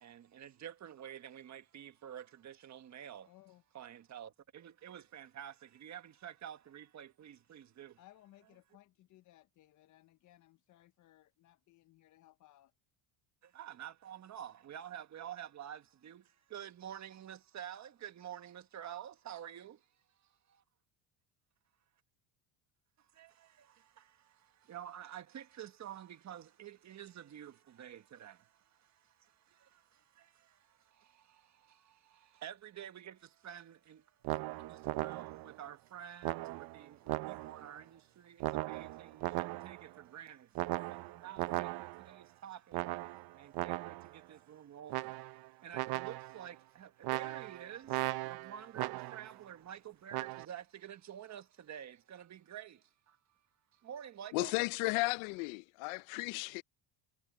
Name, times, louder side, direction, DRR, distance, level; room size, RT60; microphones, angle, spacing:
voice 1, 0.0-3.3 3.7-7.9 13.5-16.2 16.5-19.8 23.2-23.3 24.7-28.4 32.4-33.2 33.4-34.0 34.6-40.8 41.1-42.8 43.4-43.9 44.3-45.1 45.6-48.0 48.2-52.8 53.8-54.5, right 10 dB, 35° right, 1.5 m, -49 dB
voice 2, 3.3-3.6 8.0-12.7, left 15 dB, 40° left, 0.6 m, -62 dB
sound 1, 34.2-35.6 36.2-37.7 38.4-39.9 40.6-42.2 42.7-44.2 44.9-45.5 45.7-46.5 47.0-49.4 50.1-50.5, right 18 dB, 55° right, 0.7 m, -38 dB
voice 3, 54.3-56.6, left 25 dB, 90° left, 0.7 m, -34 dB
cardioid pair, 125°, 47 cm